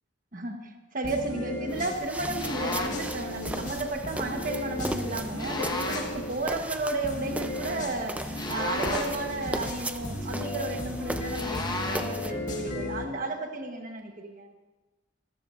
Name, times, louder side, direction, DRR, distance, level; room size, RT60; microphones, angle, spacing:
voice 1, 0.3-14.5, right 2 dB, 45° right, 4 dB, 1.2 m, -33 dB
sound 1, 1.0-6.4 7.0-13.0, left 1 dB, 45° left, 1.8 m, -35 dB
sound 2, 1.7-12.3, right 1 dB, 10° right, 0.5 m, -37 dB
sound 3, 2.4-3.1 5.4-6.2 8.4-9.3 11.3-12.2, left 2 dB, 25° left, 1.2 m, -34 dB
24.5 x 13.5 x 2.5 m, 1.2 s
head